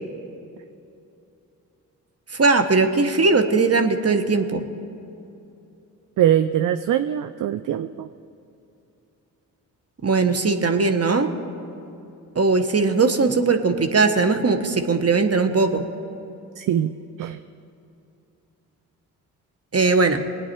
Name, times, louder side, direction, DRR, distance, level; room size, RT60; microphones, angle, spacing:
voice 1, 2.4-4.6 10.0-11.3 12.3-15.9 19.7-20.2, right 4 dB, 35° right, 8 dB, 1.3 m, -19 dB
voice 2, 6.2-8.1 16.6-16.9 17.2-17.4, right 10 dB, 50° right, 12 dB, 0.5 m, -22 dB
21.5 x 9.3 x 4.6 m, 2.8 s
hypercardioid pair, 45°, 40 cm